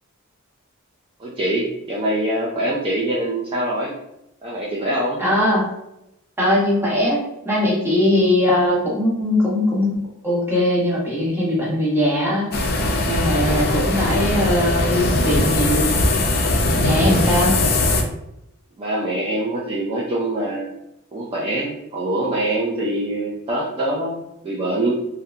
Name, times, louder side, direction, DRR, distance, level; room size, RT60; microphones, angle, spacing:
voice 1, 1.2-4.0 4.4-5.2 16.9-17.4 18.8-20.7 21.1-25.0, right 1 dB, 25° right, -4 dB, 0.3 m, -24 dB
voice 2, 5.2-5.6 6.4-12.6 13.1-15.9 16.7-17.6, left 1 dB, 10° right, -5 dB, 0.7 m, -20 dB
sound 1, 12.5-18.0, left 2 dB, 50° left, 0.4 m, -20 dB
2.7 x 2.1 x 2.3 m, 0.84 s
head